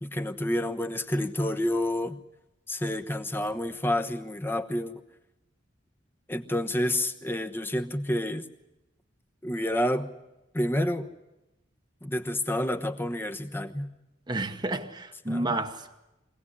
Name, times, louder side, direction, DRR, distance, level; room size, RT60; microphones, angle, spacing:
voice 1, 0.0-2.2 2.7-5.0 6.3-8.5 9.4-10.1 10.5-11.1 12.0-13.9 15.3-15.5, left 1 dB, 10° left, 1.1 m, -29 dB
voice 2, 14.3-15.9, right 2 dB, 25° right, 1.1 m, -31 dB
23.5 x 18.0 x 9.9 m
head